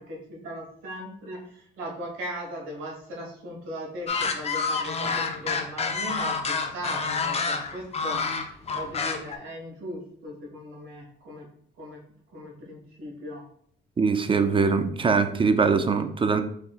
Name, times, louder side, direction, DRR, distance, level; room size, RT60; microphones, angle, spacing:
voice 1, 0.0-11.5 11.8-12.0 12.3-13.4, equal, 90° right, -2 dB, 1.4 m, -38 dB
sound 1, 4.1-9.4, left 5 dB, 30° left, 0.6 m, -28 dB
voice 2, 14.0-16.4, right 5 dB, 25° right, 9 dB, 0.4 m, -22 dB
4.2 x 3.7 x 2.4 m, 0.63 s
cardioid pair, 90°, 20 cm